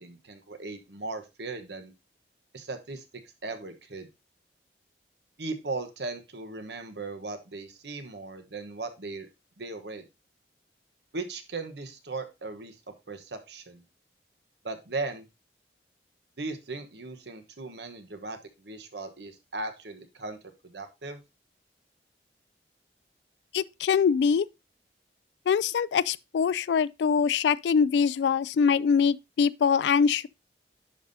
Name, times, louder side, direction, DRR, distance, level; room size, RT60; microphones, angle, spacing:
voice 1, 0.0-1.9 2.5-3.0 3.4-4.1 5.4-9.3 9.6-10.0 11.1-12.8 13.1-13.8 14.6-15.2 16.4-20.4 20.6-21.2, right 3 dB, 75° right, 1.1 m, -37 dB
voice 2, 23.5-24.5 25.5-30.3, left 6 dB, 80° left, 0.3 m, -23 dB
10.5 x 5.4 x 2.7 m
head